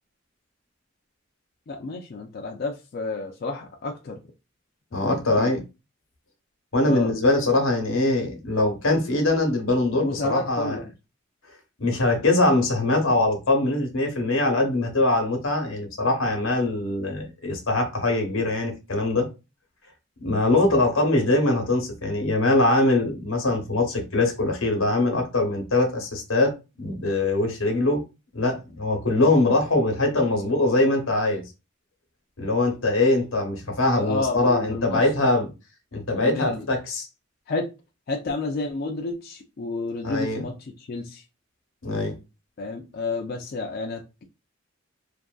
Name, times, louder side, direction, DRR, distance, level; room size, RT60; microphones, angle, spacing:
voice 1, 1.7-4.2 5.0-5.5 6.8-7.1 9.9-10.9 33.8-35.1 36.1-36.7 37.5-37.7 38.1-41.2 42.6-44.2, left 3 dB, 50° left, 0.4 m, -31 dB
voice 2, 4.9-5.6 6.7-10.8 11.8-19.3 20.2-28.0 28.3-31.4 32.4-35.5 35.9-37.1 40.0-40.4 41.8-42.2, left 2 dB, 85° left, 0.9 m, -22 dB
2.6 x 2.5 x 2.3 m
head